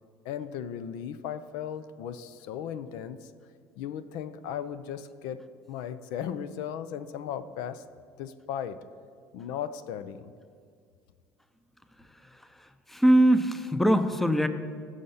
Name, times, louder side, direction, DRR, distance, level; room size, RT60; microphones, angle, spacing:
voice 1, 0.2-3.3 3.8-7.8 8.2-8.8 9.3-10.3, left 9 dB, 80° left, 13 dB, 0.6 m, -36 dB
voice 2, 12.6-14.5, right 1 dB, 5° left, 10 dB, 0.6 m, -22 dB
14.5 x 6.5 x 5.6 m, 2.1 s
cardioid pair, 110°, 7 cm